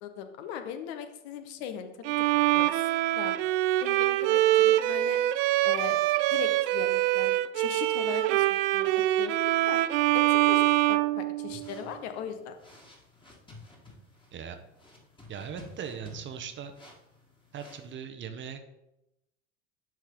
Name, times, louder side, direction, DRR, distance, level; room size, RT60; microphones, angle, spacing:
voice 1, 0.0-1.9 2.2-2.3 2.5-2.8 3.1-3.3 3.8-5.2 5.6-6.0 6.3-8.9 9.2-9.3 9.7-9.8 10.1-10.6 10.9-12.6, left 8 dB, 55° left, 8 dB, 1.1 m, -39 dB
Bowed string instrument, 2.0-11.9, right 16 dB, 50° right, 0.5 m, -25 dB
sound 1, 11.5-17.9, left 2 dB, 15° left, 1.9 m, -52 dB
voice 2, 15.3-16.7 17.5-18.8, right 7 dB, 30° right, 7 dB, 0.9 m, -39 dB
11.0 x 4.5 x 3.8 m, 0.88 s
figure-of-eight pair, 75°, 37 cm